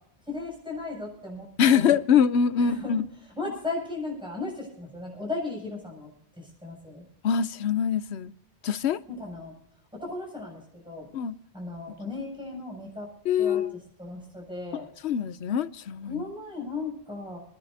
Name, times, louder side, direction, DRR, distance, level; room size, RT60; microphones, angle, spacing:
voice 1, 0.3-2.0 2.6-6.1 6.4-7.0 9.1-9.5 9.9-11.1 11.5-13.1 13.4-14.9 16.1-17.4, left 3 dB, 5° right, 7.2 m, -36 dB
voice 2, 1.6-3.1 7.2-8.3 8.6-9.0 11.1-11.4 13.3-13.8 15.0-16.2, left 7 dB, 80° left, 1.0 m, -24 dB
29.0 x 10.5 x 2.7 m
omnidirectional pair, 1.1 m